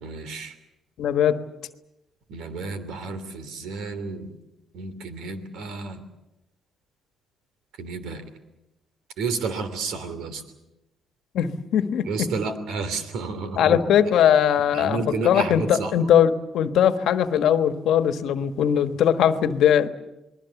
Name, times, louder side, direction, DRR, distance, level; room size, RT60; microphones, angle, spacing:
voice 1, 0.0-0.5 2.3-4.3 4.7-6.0 7.8-8.2 9.2-10.4 12.1-13.8 14.7-16.1, right 4 dB, 85° right, 11 dB, 3.0 m, -31 dB
voice 2, 1.0-1.4 11.3-12.3 13.6-19.9, left 9 dB, 80° left, 9 dB, 1.3 m, -20 dB
28.5 x 20.5 x 7.1 m, 0.96 s
cardioid pair, 90°, 0 cm